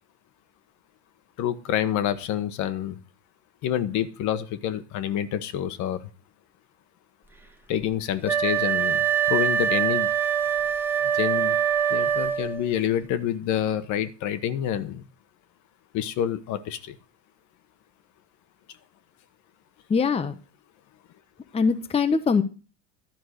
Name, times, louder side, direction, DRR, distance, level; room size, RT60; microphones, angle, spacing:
voice 1, 1.4-3.0 3.6-6.1 7.7-10.1 11.1-11.6 11.9-15.0 15.9-17.0, left 10 dB, 55° left, 11 dB, 1.1 m, -27 dB
Wind instrument woodwind instrument, 8.2-12.7, right 9 dB, 5° right, 1.2 m, -24 dB
voice 2, 19.9-20.3 21.5-22.4, left 5 dB, 15° left, 9 dB, 0.9 m, -22 dB
12.0 x 4.6 x 6.4 m, 0.34 s
hypercardioid pair, 90°, 36 cm